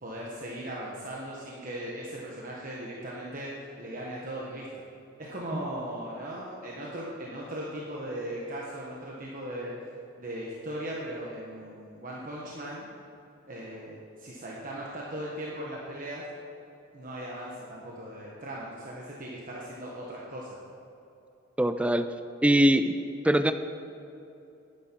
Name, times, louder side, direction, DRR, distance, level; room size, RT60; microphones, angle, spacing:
voice 1, 0.0-4.8 5.2-9.7 10.2-12.9 13.5-16.2 16.9-20.6, right 1 dB, 40° right, -4 dB, 1.3 m, -38 dB
voice 2, 21.6-22.1 22.4-23.0 23.2-23.5, right 1 dB, 5° right, 9 dB, 0.4 m, -22 dB
11.0 x 10.0 x 4.6 m, 2.9 s
head